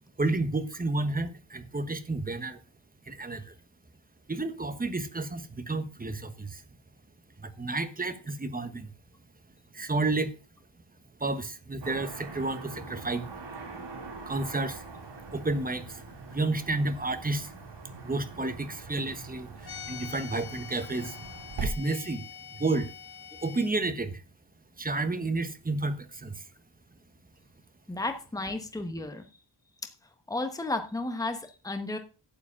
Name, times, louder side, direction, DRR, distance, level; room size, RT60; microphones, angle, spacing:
voice 1, 0.2-2.6 3.1-3.5 4.3-6.6 7.4-8.9 9.7-10.3 11.2-13.2 14.2-14.8 15.3-16.0 16.3-17.5 18.0-21.2 21.6-22.2 22.5-22.9 23.4-24.2 24.8-26.4, right 2 dB, 20° right, 1.1 m, -31 dB
Car passing by / Traffic noise roadway noise, 11.8-21.7, right 3 dB, 65° right, 2.9 m, -42 dB
sound 1, 19.6-23.7, left 8 dB, 55° left, 1.2 m, -44 dB
voice 2, 27.9-29.3 30.3-32.0, left 2 dB, 10° left, 1.1 m, -33 dB
12.0 x 5.0 x 8.6 m
wide cardioid pair, 180°, 45 cm